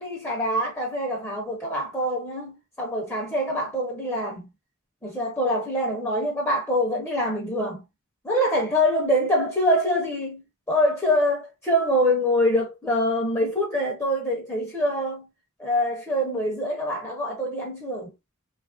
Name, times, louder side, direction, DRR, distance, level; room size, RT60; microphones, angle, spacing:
voice 1, 0.0-4.5 5.0-7.8 8.2-10.4 10.7-15.3 15.6-18.1, equal, 15° left, 0.7 m, -25 dB
3.0 x 2.4 x 2.3 m
head